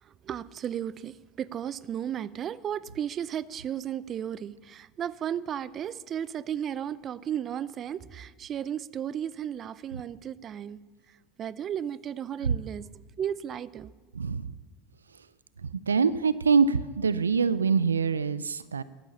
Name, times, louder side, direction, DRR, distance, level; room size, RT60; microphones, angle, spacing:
voice 1, 0.0-10.8 11.1-13.9, right 9 dB, 35° right, 19 dB, 0.6 m, -34 dB
voice 2, 14.2-14.5 15.9-18.8, right 5 dB, 85° right, 17 dB, 0.5 m, -24 dB
15.0 x 13.0 x 7.1 m, 1.3 s
hypercardioid pair, 80°, 0 cm